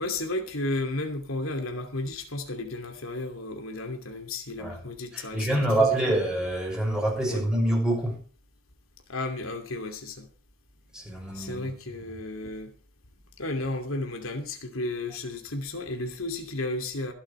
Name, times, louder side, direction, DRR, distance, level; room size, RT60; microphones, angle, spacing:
voice 1, 0.0-6.2 7.3-7.4 9.1-10.3 11.3-12.7 13.4-17.1, left 2 dB, 85° left, 2.6 m, -33 dB
voice 2, 5.1-8.2 10.9-11.7, right 1 dB, 5° right, 6.5 m, -26 dB
25.5 x 8.8 x 3.3 m
head